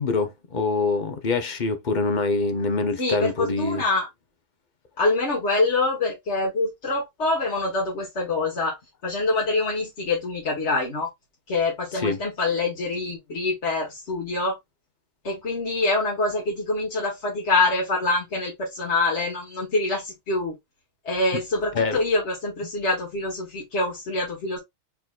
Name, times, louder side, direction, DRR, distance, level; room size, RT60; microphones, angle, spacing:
voice 1, 0.0-3.8 12.0-12.2 21.7-22.0, left 3 dB, 45° left, 1.0 m, -25 dB
voice 2, 3.0-4.1 5.0-8.8 9.0-11.1 11.5-14.6 15.2-20.5 21.1-24.6, left 2 dB, 70° left, 1.9 m, -25 dB
4.6 x 3.9 x 2.4 m
omnidirectional pair, 1.2 m